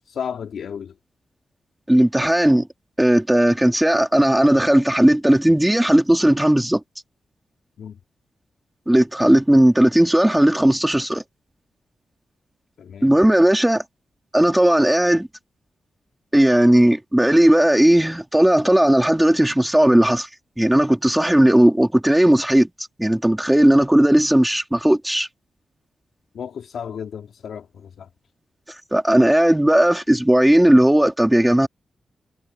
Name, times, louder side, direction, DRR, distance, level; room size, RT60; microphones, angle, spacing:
voice 1, 0.1-0.9 7.8-8.0 12.8-13.1 26.3-28.1, left 7 dB, 70° left, 2.9 m, -33 dB
voice 2, 1.9-2.7 3.0-6.8 8.9-11.2 13.0-13.8 14.3-15.3 16.3-20.3 20.6-22.7 23.0-25.3 28.9-31.7, right 1 dB, 5° right, 3.4 m, -16 dB
wide cardioid pair, 165°, 0 cm